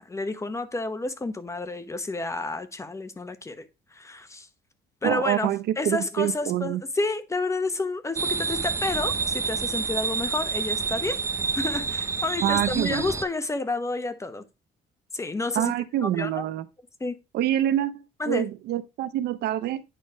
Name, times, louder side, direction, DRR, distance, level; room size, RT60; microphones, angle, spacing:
voice 1, 0.0-3.6 3.9-4.5 5.0-5.5 5.8-11.2 11.6-14.4 15.1-15.7 16.0-16.4 17.0-17.2 18.2-18.5, left 2 dB, 15° left, 0.9 m, -30 dB
voice 2, 5.0-6.8 12.4-13.1 15.6-16.7 17.3-17.9 18.3-19.8, right 12 dB, 75° right, 0.7 m, -26 dB
sound 1, 8.2-13.3, right 4 dB, 15° right, 0.5 m, -28 dB
9.2 x 3.2 x 5.5 m
cardioid pair, 110°, 17 cm